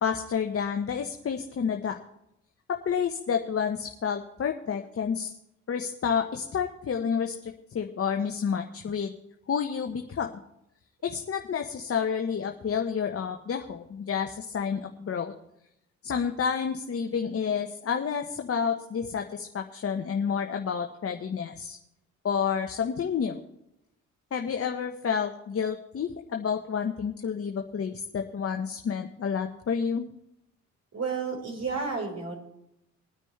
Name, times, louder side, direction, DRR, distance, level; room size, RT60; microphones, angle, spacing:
voice 1, 0.0-2.0 2.7-5.3 5.7-9.1 9.5-10.3 11.0-15.3 16.0-21.8 22.2-23.4 24.3-30.0, left 7 dB, 35° left, 4 dB, 1.1 m, -29 dB
voice 2, 30.9-32.4, right 4 dB, 40° right, -1 dB, 4.5 m, -31 dB
21.5 x 9.7 x 3.3 m, 0.80 s
hypercardioid pair, 45°, 39 cm